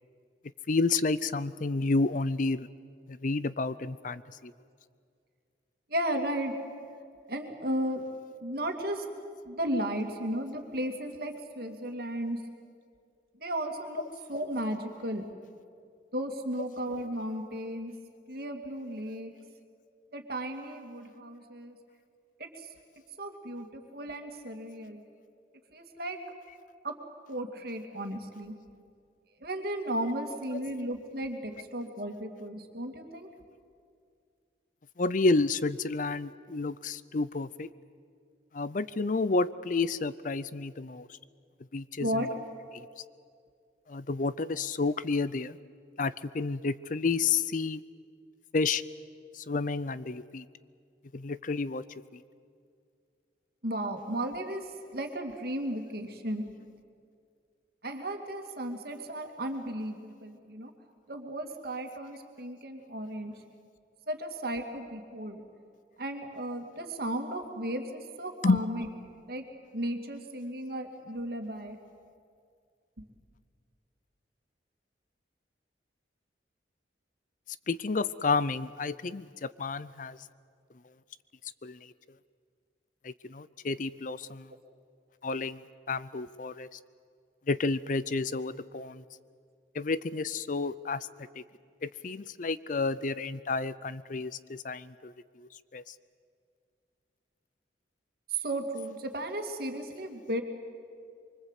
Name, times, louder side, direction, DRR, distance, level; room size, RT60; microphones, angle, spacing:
voice 1, 0.7-2.7 3.1-4.5 35.0-37.7 38.5-41.1 41.7-42.3 42.7-42.9 43.9-45.6 46.0-47.8 48.5-48.8 49.3-50.4 51.1-51.8 68.4-68.6 77.7-80.2 81.6-81.8 83.0-84.5 85.2-85.6 85.9-86.7 87.5-89.0 89.7-91.1 91.4-91.5 91.8-95.1 95.4-95.9, left 3 dB, 45° left, 16 dB, 0.5 m, -30 dB
voice 2, 5.9-6.5 7.3-8.0 8.4-9.0 9.5-12.4 13.4-14.0 14.3-15.2 16.1-17.9 18.3-19.3 20.1-21.8 22.4-22.7 23.2-25.0 25.7-26.2 26.8-27.0 27.3-28.5 29.4-33.3 42.0-42.3 53.6-56.5 57.8-60.7 61.1-63.3 64.1-65.4 66.0-68.9 69.3-69.4 69.7-71.8 98.3-100.4, right 1 dB, 55° right, 4 dB, 2.6 m, -34 dB
24.5 x 24.5 x 8.3 m, 2.3 s
head